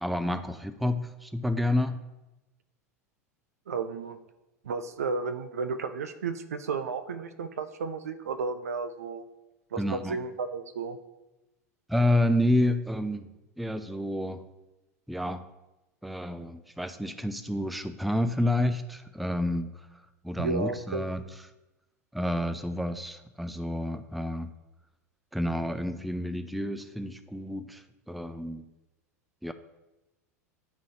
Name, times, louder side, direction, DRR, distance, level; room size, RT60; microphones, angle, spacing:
voice 1, 0.0-2.0 9.8-10.2 11.9-13.3 13.6-14.4 15.1-15.5 16.0-19.7 20.2-21.2 22.1-24.5 25.3-28.7 29.4-29.5, left 1 dB, ahead, 10 dB, 0.3 m, -29 dB
voice 2, 3.7-4.2 4.6-9.2 9.7-11.0 20.4-21.1, right 4 dB, 70° right, 9 dB, 0.5 m, -33 dB
10.5 x 3.8 x 2.7 m, 1.0 s
figure-of-eight pair, 80°, 9 cm